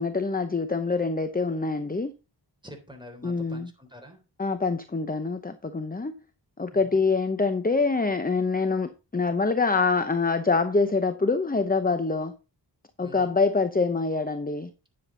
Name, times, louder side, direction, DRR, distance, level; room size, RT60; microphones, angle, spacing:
voice 1, 0.0-2.1 3.2-3.7 4.4-6.1 6.6-12.3 13.0-14.7, left 4 dB, 20° left, 0.8 m, -25 dB
voice 2, 2.6-4.2 6.7-7.0 13.0-13.4, equal, 10° right, 3.5 m, -46 dB
10.0 x 7.3 x 3.9 m
wide cardioid pair, 55°, 44 cm